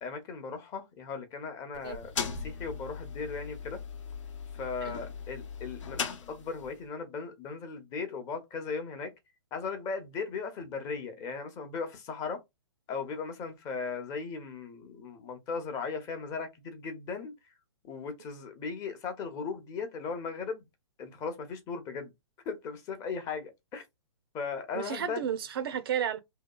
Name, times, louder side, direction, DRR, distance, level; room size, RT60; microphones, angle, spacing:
voice 1, 0.0-3.8 4.5-9.1 9.5-12.4 12.9-17.3 17.8-20.6 21.0-22.1 22.5-23.8 24.3-25.2, left 5 dB, 20° left, 0.6 m, -37 dB
sound 1, 1.7-6.8, left 6 dB, 75° left, 0.8 m, -39 dB
voice 2, 24.7-26.2, right 9 dB, 50° right, 0.4 m, -32 dB
2.8 x 2.3 x 2.2 m
hypercardioid pair, 140°, 16 cm